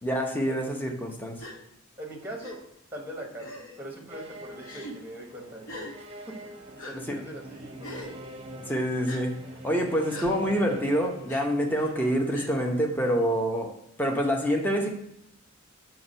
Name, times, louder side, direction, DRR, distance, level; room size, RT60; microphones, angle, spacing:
voice 1, 0.0-1.4 7.1-7.2 8.6-9.4 9.6-13.7 14.0-14.9, equal, 10° left, 1 dB, 0.7 m, -26 dB
Gasp, 1.4-1.6 2.4-2.5 3.4-3.8 4.6-4.9 5.7-5.9 6.8-6.9 7.8-8.1 9.1-9.2 10.1-10.3 11.3-11.4 12.3-12.5, left 1 dB, 75° left, 1.0 m, -41 dB
voice 2, 2.0-8.3 11.7-11.9, right 1 dB, 10° right, 0 dB, 1.1 m, -42 dB
sound 1, 4.1-13.2, right 1 dB, 30° right, 0.8 m, -45 dB
5.9 x 2.9 x 5.4 m, 0.79 s
head